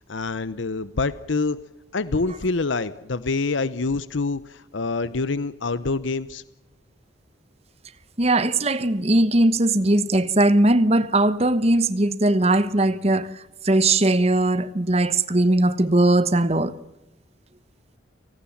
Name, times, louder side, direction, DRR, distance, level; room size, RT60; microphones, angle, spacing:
voice 1, 0.1-1.6 1.9-6.4, left 3 dB, 75° left, 0.8 m, -26 dB
voice 2, 8.2-13.3 13.6-16.8, right 2 dB, 30° right, 1.1 m, -19 dB
29.5 x 19.0 x 7.3 m
head